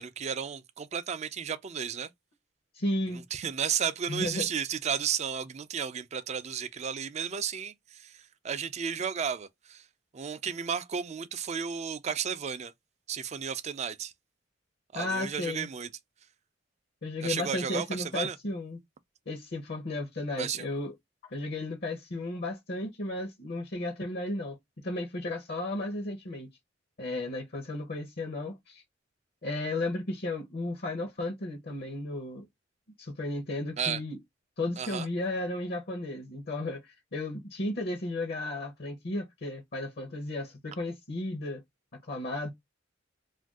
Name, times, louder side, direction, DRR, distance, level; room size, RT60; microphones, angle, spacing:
voice 1, 0.0-2.1 3.1-9.9 10.1-12.7 13.1-14.1 14.9-15.9 17.2-18.4 20.4-20.7 33.8-34.0 34.8-35.1, right 7 dB, 35° right, 0.4 m, -33 dB
voice 2, 2.7-3.2 4.1-4.5 14.9-15.7 17.0-18.8 19.3-20.9 21.3-24.6 24.8-26.5 27.0-28.8 29.4-32.5 33.0-34.2 34.6-41.6 42.1-42.5, left 2 dB, 55° left, 0.7 m, -34 dB
2.5 x 2.2 x 3.4 m
head